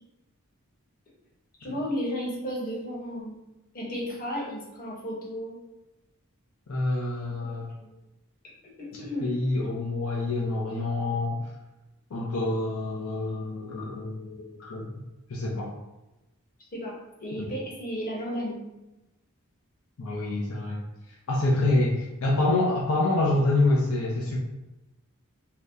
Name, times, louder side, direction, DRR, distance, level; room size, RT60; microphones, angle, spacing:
voice 1, 1.6-3.4 3.7-5.6 7.3-7.5 7.8-7.9 8.8-9.3 16.7-18.6, equal, 45° left, -4 dB, 0.9 m, -34 dB
voice 2, 6.7-7.7 9.2-11.5 12.1-14.9 15.3-15.7 17.4-17.5 20.0-20.8 21.3-24.4, left 2 dB, 75° left, -4 dB, 0.5 m, -26 dB
2.7 x 2.0 x 3.5 m, 0.97 s
head